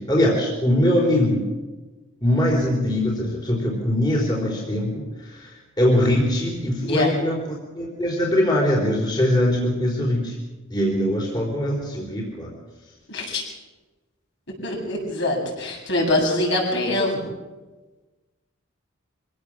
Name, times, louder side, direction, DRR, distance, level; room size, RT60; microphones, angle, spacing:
voice 1, 0.0-1.4 2.2-5.5 5.8-7.4 7.7-10.4 10.7-12.5, left 1 dB, 20° left, -2 dB, 4.0 m, -22 dB
voice 2, 6.8-7.1 13.1-13.4 14.6-17.2, left 1 dB, 60° left, -1 dB, 7.7 m, -23 dB
24.5 x 17.0 x 7.5 m, 1.2 s
head